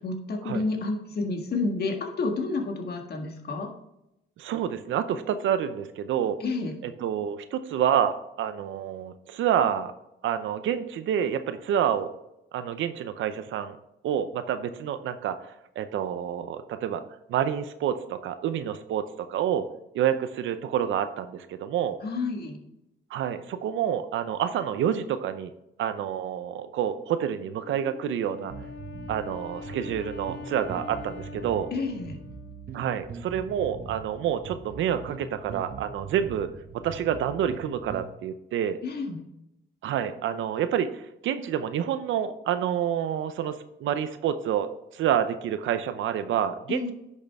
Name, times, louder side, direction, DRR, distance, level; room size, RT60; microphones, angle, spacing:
voice 1, 0.0-3.7 6.4-6.7 22.0-22.6 31.7-32.2 38.8-39.2 46.7-46.9, left 3 dB, 55° left, 3 dB, 1.7 m, -30 dB
voice 2, 4.4-6.4 6.8-9.9 10.2-12.1 12.5-13.8 14.0-17.0 17.3-19.6 19.9-22.0 23.1-25.5 25.8-28.5 29.1-31.7 32.7-38.8 39.8-43.5 43.8-46.9, right 9 dB, 75° right, 11 dB, 0.7 m, -28 dB
Wind instrument woodwind instrument, 27.6-33.0, left 4 dB, 85° left, 1.8 m, -43 dB
sound 1, 28.5-38.1, right 5 dB, 50° right, 1.2 m, -42 dB
10.5 x 6.5 x 3.6 m, 0.85 s
cardioid pair, 90°, 20 cm